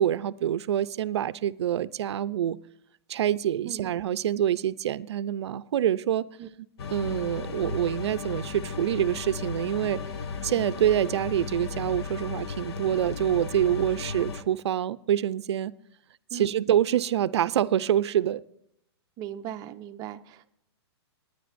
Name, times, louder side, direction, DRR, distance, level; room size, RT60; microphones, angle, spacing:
voice 1, 0.0-2.6 3.1-6.3 6.9-10.0 10.4-15.7 16.3-18.4, right 11 dB, 75° right, 16 dB, 0.5 m, -26 dB
sound 1, 6.8-14.4, left 5 dB, 70° left, 1.0 m, -35 dB
voice 2, 19.2-20.5, right 10 dB, 25° right, 7 dB, 0.7 m, -38 dB
21.0 x 9.8 x 2.6 m, 0.74 s
hypercardioid pair, 150°, 14 cm